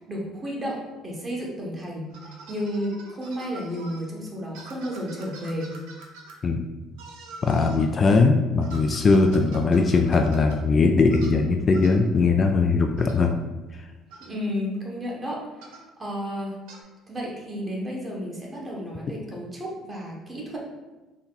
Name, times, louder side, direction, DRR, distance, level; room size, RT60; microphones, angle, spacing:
voice 1, 0.0-2.1 2.5-5.7 14.2-15.7 16.0-16.6 17.1-20.6, equal, 25° right, -2 dB, 1.3 m, -32 dB
sound 1, 2.1-4.0 4.5-6.4 7.0-7.9 8.6-10.6 11.1-11.4 11.7-12.0 13.0-13.2 14.1-14.3 15.6-15.9 16.7-16.8, right 3 dB, 85° right, 0.6 m, -45 dB
voice 2, 7.4-13.3, left 4 dB, 40° left, 4 dB, 0.3 m, -20 dB
4.1 x 2.1 x 3.9 m, 1.1 s
supercardioid pair, 80°, 0 cm